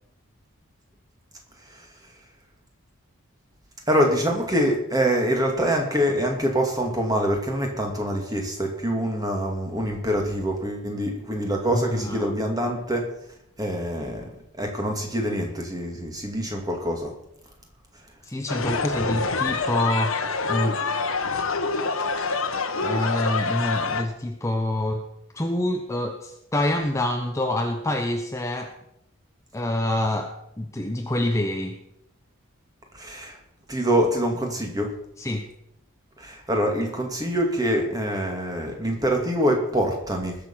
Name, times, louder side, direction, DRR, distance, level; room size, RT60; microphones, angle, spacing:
voice 1, 3.9-13.1 13.6-14.3 14.6-17.1 33.0-33.4 33.7-34.9 36.2-40.4, equal, 15° right, 2 dB, 2.4 m, -25 dB
voice 2, 11.6-12.3 18.2-20.2 20.5-20.8 22.8-25.0 25.3-28.7 29.5-31.8 35.2-35.5, left 1 dB, 15° left, 3 dB, 0.8 m, -26 dB
sound 1, 18.5-24.0, left 4 dB, 75° left, 1.3 m, -26 dB
20.5 x 6.8 x 5.7 m, 0.78 s
head